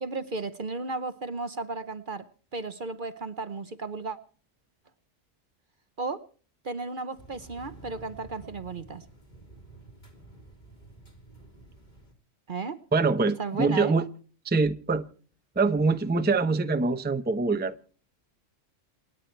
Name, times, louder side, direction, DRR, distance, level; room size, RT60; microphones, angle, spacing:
voice 1, 0.0-2.3 2.5-4.2 6.0-6.2 6.6-9.1 12.5-12.8 13.4-13.9, right 3 dB, 45° right, 1.0 m, -34 dB
sound 1, 7.2-12.1, right 2 dB, 35° left, 3.0 m, -50 dB
voice 2, 12.9-14.0 14.4-15.0 15.6-17.7, right 4 dB, 10° right, 0.7 m, -24 dB
28.0 x 9.5 x 4.5 m
omnidirectional pair, 1.3 m